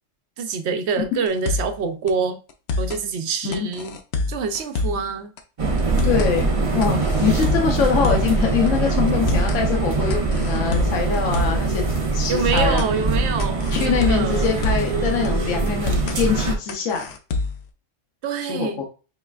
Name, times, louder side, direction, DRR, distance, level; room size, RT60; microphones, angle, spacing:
voice 1, 0.4-2.4 2.8-4.0 4.3-5.3 12.3-14.5 18.2-18.8, right 5 dB, 65° right, 0.8 m, -26 dB
sound 1, 1.3-1.8 2.1-2.2 2.5-3.0 3.5-5.1 5.4-5.5 5.8-6.3 6.8-8.4 8.7-8.8 9.1-9.6 10.1-11.7 12.0-12.1 12.4-12.9 13.4-15.0 15.2-15.3 15.7-16.2 16.7-17.7, left 3 dB, 65° left, 0.8 m, -26 dB
sound 2, 5.6-16.6, right 3 dB, 35° right, 0.6 m, -22 dB
voice 2, 6.0-11.8 12.1-12.8 13.7-17.1 18.5-18.8, left 6 dB, 80° left, 1.1 m, -23 dB
5.4 x 3.2 x 2.4 m
omnidirectional pair, 1.3 m